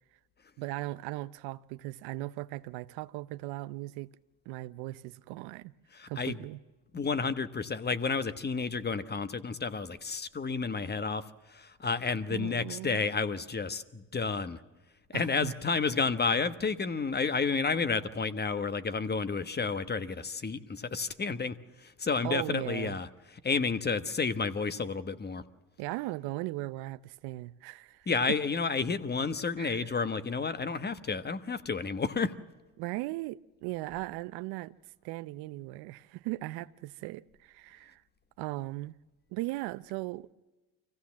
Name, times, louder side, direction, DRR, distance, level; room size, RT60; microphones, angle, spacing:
voice 1, 0.6-4.1 4.5-5.7 6.1-6.6 12.3-13.0 15.1-15.5 22.2-23.0 25.8-28.1 29.6-29.9 32.8-34.7 35.0-38.0 38.4-38.9 39.3-40.3, right 19 dB, 80° right, 0.7 m, -38 dB
voice 2, 5.9-6.4 6.9-11.2 11.5-14.6 15.1-23.1 23.4-25.4 28.1-32.3, left 4 dB, 25° left, 1.2 m, -31 dB
24.5 x 16.0 x 7.2 m
supercardioid pair, 80°, 38 cm